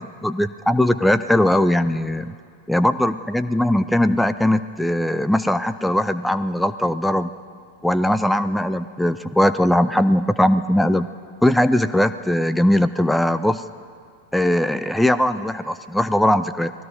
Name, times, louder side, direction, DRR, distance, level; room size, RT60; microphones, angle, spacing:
voice 1, 0.0-2.3 2.7-7.3 7.8-11.1 11.4-13.6 14.3-16.7, left 1 dB, 5° left, 12 dB, 0.5 m, -20 dB
30.0 x 20.0 x 5.0 m, 2.2 s
figure-of-eight pair, 90°, 0 cm